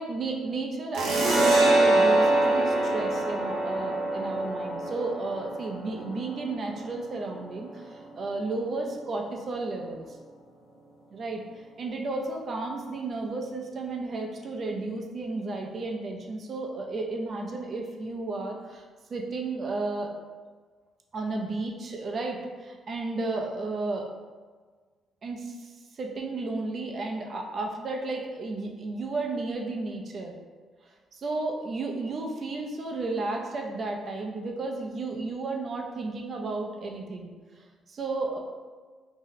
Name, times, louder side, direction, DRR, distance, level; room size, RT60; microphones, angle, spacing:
voice 1, 0.0-10.0 11.1-11.4 11.8-18.8 19.1-20.1 21.1-24.1 25.2-30.3 31.2-37.3 37.9-38.4, right 3 dB, 50° right, 1 dB, 0.4 m, -33 dB
sound 1, 0.9-8.1, right 2 dB, 90° right, 0.7 m, -25 dB
2.7 x 2.1 x 3.9 m, 1.5 s
cardioid pair, 90°, 0 cm